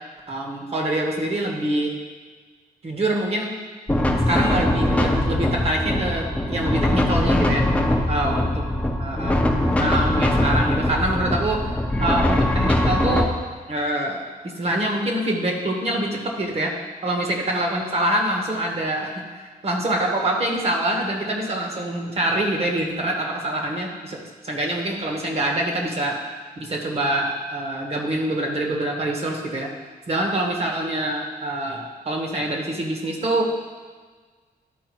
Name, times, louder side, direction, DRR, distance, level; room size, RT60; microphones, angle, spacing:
voice 1, 0.3-2.0 2.8-3.6 4.2-7.7 8.1-8.7 9.0-11.7 12.0-13.3 13.7-16.7 17.0-19.2 19.6-26.2 26.6-29.7 30.1-33.5, right 1 dB, 40° right, 0 dB, 1.2 m, -25 dB
sound 1, 3.9-13.2, left 1 dB, 10° left, 0.6 m, -21 dB
12.0 x 4.7 x 3.1 m, 1.5 s
wide cardioid pair, 155°, 16 cm